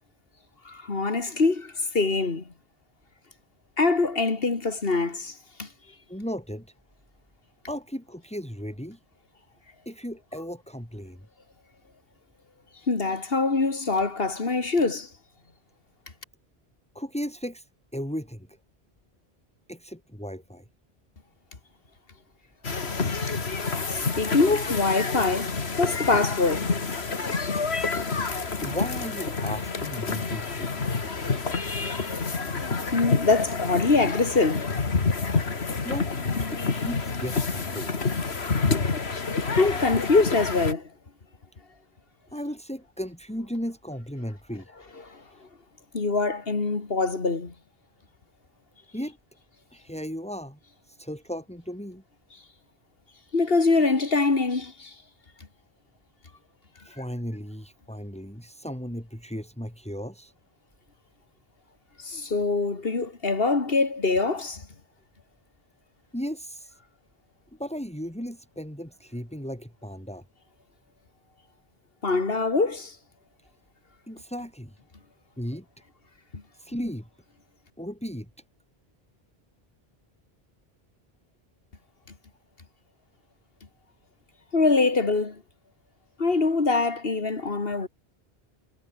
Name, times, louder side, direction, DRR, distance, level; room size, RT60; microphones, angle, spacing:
voice 1, 0.6-2.4 3.8-5.7 12.9-15.1 23.9-26.7 31.5-32.2 32.9-34.7 39.5-40.9 45.0-45.2 45.9-47.5 53.3-54.9 62.0-64.7 72.0-73.0 76.3-76.4 84.5-85.4 86.2-87.9, left 3 dB, 65° left, 2.5 m, -24 dB
voice 2, 6.1-6.7 7.7-9.0 9.9-11.3 16.9-17.7 17.9-18.5 19.7-20.6 28.6-30.8 35.8-36.2 36.5-37.9 42.3-44.7 48.9-49.2 49.7-50.6 50.8-52.0 56.8-60.3 66.1-66.8 67.6-70.2 74.1-74.8 75.4-75.7 76.6-77.1 77.8-78.3, equal, 5° left, 6.1 m, -35 dB
sound 1, 22.6-40.7, left 4 dB, 90° left, 2.3 m, -28 dB
omnidirectional pair, 1.0 m